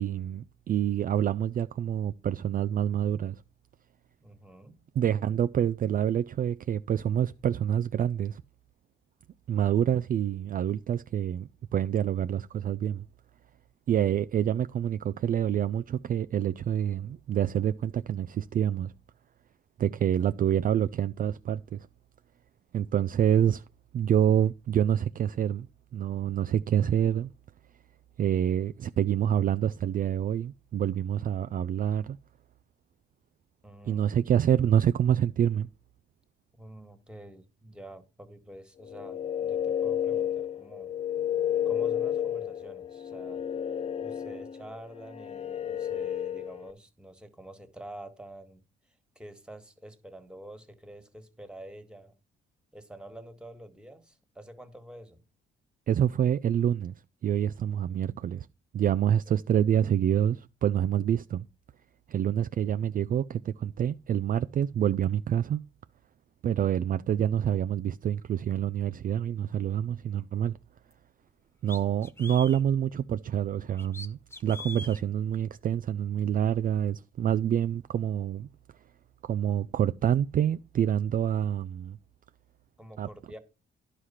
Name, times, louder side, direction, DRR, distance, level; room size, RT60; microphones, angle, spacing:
voice 1, 0.0-3.4 5.0-8.4 9.5-13.0 13.9-18.9 19.8-21.9 22.7-23.6 23.9-25.7 25.9-27.3 28.2-32.2 33.9-35.7 55.9-56.9 57.2-58.5 58.7-61.5 62.1-65.6 66.4-70.5 71.6-78.5 79.2-82.0 83.0-83.1, right 10 dB, 45° right, 0.4 m, -27 dB
voice 2, 4.2-4.8 33.6-34.1 36.5-40.9 41.6-43.4 44.0-48.6 49.1-52.1 52.7-55.2 59.3-59.4 82.8-83.4, right 1 dB, 5° right, 1.7 m, -47 dB
sound 1, 38.8-46.7, left 10 dB, 35° left, 0.5 m, -31 dB
sound 2, 70.9-71.0 71.7-72.6 73.8-75.0, left 2 dB, 10° left, 0.8 m, -42 dB
11.0 x 4.9 x 5.7 m
cardioid pair, 90°, 20 cm